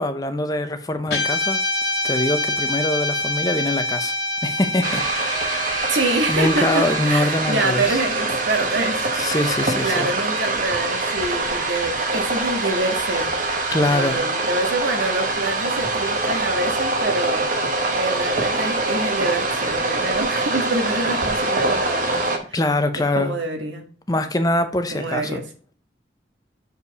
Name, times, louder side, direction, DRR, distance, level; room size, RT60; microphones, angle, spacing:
voice 1, 0.0-1.6 2.0-4.1 4.4-5.9 6.3-8.0 9.2-10.1 13.7-14.2 22.5-23.3 24.1-25.4, left 1 dB, 20° left, 0.6 m, -23 dB
Guitar, 1.1-9.5, left 2 dB, 60° left, 2.3 m, -27 dB
sound 1, 4.8-22.4, right 2 dB, 45° right, 1.1 m, -24 dB
voice 2, 5.9-9.1 9.5-13.3 13.9-17.5 17.9-22.2 22.5-22.6 22.9-23.9 24.9-25.5, right 2 dB, 85° right, 1.5 m, -26 dB
6.7 x 4.9 x 4.0 m
head